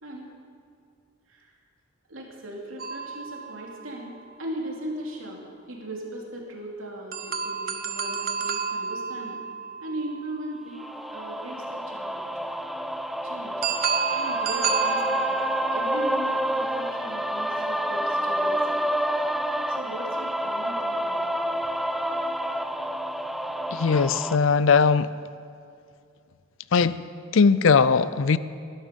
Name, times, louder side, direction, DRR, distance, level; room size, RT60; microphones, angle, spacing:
voice 1, 0.0-0.3 1.3-1.5 2.1-9.4 9.8-10.8 11.1-12.3 13.1-13.6 14.1-15.4 15.7-18.6 19.7-21.3, right 1 dB, 70° right, -1 dB, 2.9 m, -38 dB
sound 1, 2.8-4.5 7.1-11.0 13.6-17.1, right 5 dB, 45° right, 0.8 m, -31 dB
sound 2, 10.8-24.4, equal, ahead, 0.3 m, -28 dB
voice 2, 23.7-25.1 26.7-27.0 27.3-28.4, left 5 dB, 65° left, 16 dB, 0.5 m, -19 dB
20.0 x 11.0 x 5.3 m, 2.4 s
head